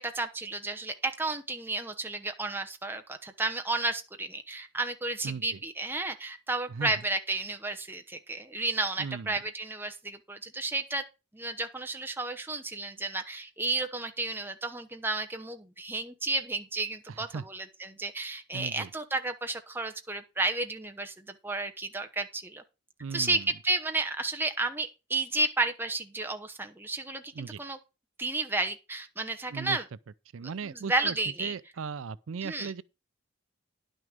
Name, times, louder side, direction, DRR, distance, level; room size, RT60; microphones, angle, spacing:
voice 1, 0.0-11.0 11.3-22.6 23.1-27.8 28.2-29.8 30.4-31.5 32.4-32.7, right 2 dB, 10° right, 1.0 m, -32 dB
voice 2, 5.2-5.6 6.7-6.9 9.0-9.4 17.1-17.4 18.5-18.9 23.0-23.5 27.4-27.6 29.5-29.8 30.3-32.8, right 5 dB, 80° right, 0.5 m, -37 dB
10.5 x 6.4 x 5.1 m
head